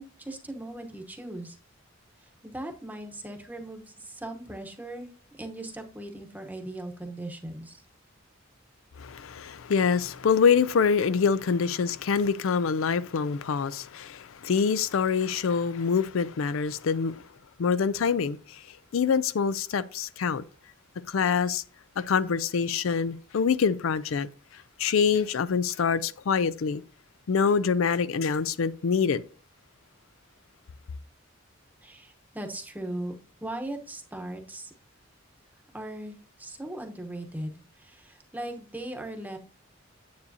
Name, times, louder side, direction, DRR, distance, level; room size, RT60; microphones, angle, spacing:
voice 1, 0.0-1.6 2.2-7.8 31.8-33.1 33.4-34.7 35.7-39.4, right 1 dB, 10° right, 1.0 m, -39 dB
voice 2, 9.0-17.3 17.6-20.4 21.1-21.6 22.0-26.8 27.3-29.2, left 6 dB, 75° left, 0.4 m, -25 dB
9.5 x 8.2 x 2.7 m
head